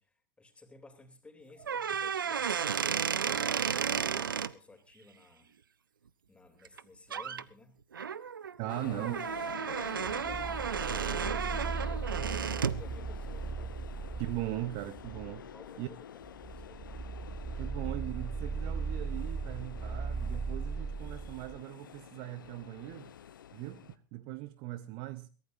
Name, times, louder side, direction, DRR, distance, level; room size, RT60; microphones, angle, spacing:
voice 1, 0.0-5.5 6.3-7.8 8.6-9.1 9.7-14.7 15.5-16.3 16.5-16.9, left 3 dB, 10° left, 3.3 m, -56 dB
sound 1, 1.6-4.5 6.7-6.8 7.1-7.4 7.9-12.8, right 7 dB, 80° right, 0.6 m, -33 dB
voice 2, 8.6-9.2 14.2-15.5 15.8-15.9 17.6-23.1 23.5-25.3, right 16 dB, 45° right, 0.8 m, -39 dB
sound 2, 8.7-24.0, left 9 dB, 70° left, 0.8 m, -48 dB
sound 3, 9.9-15.5 16.2-21.6, right 4 dB, 10° right, 0.7 m, -38 dB
22.5 x 15.5 x 2.7 m
figure-of-eight pair, 95°, 11 cm